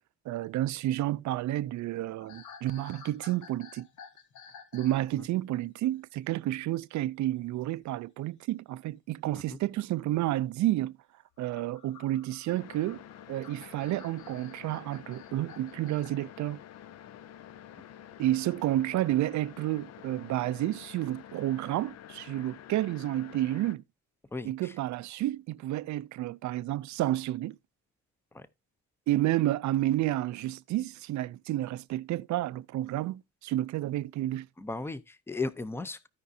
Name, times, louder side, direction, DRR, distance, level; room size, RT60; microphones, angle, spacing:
voice 1, 0.3-3.9 4.7-10.9 11.4-13.0 13.3-16.6 18.2-23.8 24.4-27.6 29.1-34.5, right 14 dB, 70° right, 0.5 m, -30 dB
sound 1, 2.2-5.0 5.3-5.6 7.8-8.0 9.3-9.4 11.3-16.1, left 6 dB, 75° left, 1.2 m, -52 dB
sound 2, 12.5-23.8, left 10 dB, 60° left, 0.6 m, -49 dB
voice 2, 24.3-24.7 28.3-28.5 34.6-36.1, left 3 dB, 10° left, 0.6 m, -36 dB
15.5 x 5.2 x 2.7 m
cardioid pair, 90°, 30 cm